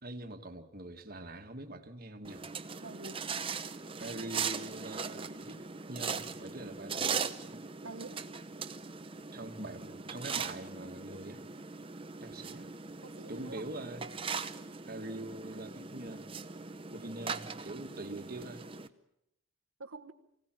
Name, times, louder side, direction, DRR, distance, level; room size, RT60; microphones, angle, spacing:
voice 1, 0.0-2.4 4.0-5.6 5.9-7.2 9.3-11.4 12.2-12.7 13.3-14.0 14.9-16.3 16.9-18.6, right 1 dB, 45° right, 5 dB, 1.6 m, -43 dB
sound 1, 2.2-18.9, right 5 dB, 25° right, 0.8 m, -40 dB
voice 2, 2.8-3.4 7.8-8.2 13.0-13.7 18.1-18.2 19.8-20.1, right 3 dB, 85° right, 5 dB, 1.2 m, -46 dB
24.5 x 17.5 x 8.9 m, 0.83 s
head